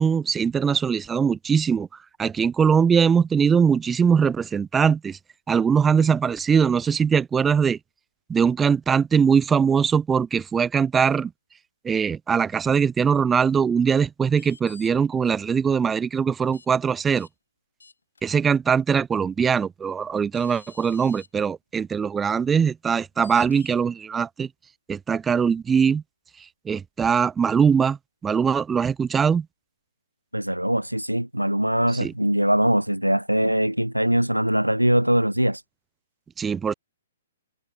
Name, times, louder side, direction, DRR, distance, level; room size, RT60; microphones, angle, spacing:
voice 1, 0.0-1.9 2.2-5.2 5.5-7.8 8.3-11.3 11.8-17.3 18.2-24.5 24.9-26.0 26.7-28.0 28.2-29.5 31.9-32.1 36.4-36.7, right 6 dB, 10° right, 0.6 m, -21 dB
sound 1, 14.3-14.9 16.5-16.7 17.2-17.3 17.8-18.2 19.9-20.0 20.3-21.3 23.2-23.8, left 4 dB, 70° left, 6.3 m, -48 dB
voice 2, 30.3-35.6, right 1 dB, 90° right, 0.5 m, -22 dB
figure-of-eight pair, 120°, 0 cm